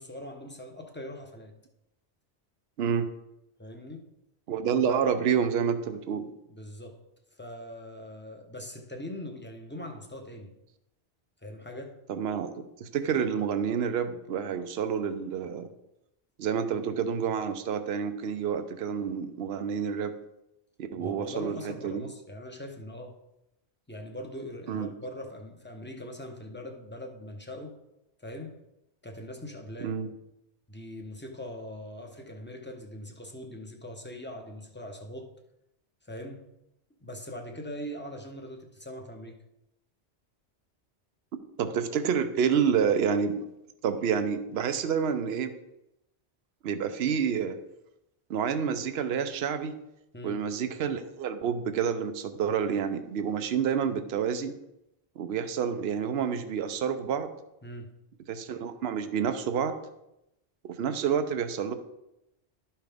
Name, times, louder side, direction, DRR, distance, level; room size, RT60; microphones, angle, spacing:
voice 1, 0.0-1.5 3.6-4.1 6.4-7.0 7.3-10.5 11.4-12.0 20.9-23.2 23.9-27.7 28.2-28.6 29.0-30.0 30.7-35.3 36.0-36.5 37.0-39.4 50.1-50.4 57.6-57.9, left 1 dB, 10° left, 0.8 m, -41 dB
voice 2, 4.5-6.3 12.1-12.5 12.8-15.7 16.4-20.2 20.9-21.6 21.8-22.0 24.7-24.9 29.8-30.1 41.6-43.4 43.8-45.5 46.6-47.6 48.3-49.7 50.2-54.5 55.2-57.3 58.3-59.8 60.6-61.7, right 7 dB, 70° right, 0.9 m, -28 dB
12.0 x 5.7 x 3.5 m
omnidirectional pair, 1.1 m